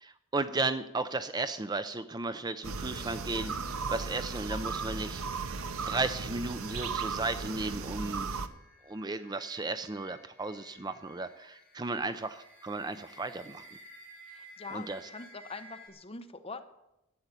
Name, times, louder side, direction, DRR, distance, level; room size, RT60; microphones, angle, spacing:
voice 1, 0.0-5.5 5.9-8.3 8.8-13.6 14.7-15.0, right 3 dB, 20° right, 11 dB, 0.5 m, -35 dB
sound 1, 2.6-8.5, right 4 dB, 85° right, 0.9 m, -36 dB
sound 2, 3.1-15.9, equal, 5° left, 4.6 m, -55 dB
voice 2, 14.3-16.6, left 3 dB, 25° left, 7 dB, 1.0 m, -44 dB
13.0 x 8.6 x 8.2 m, 0.88 s
head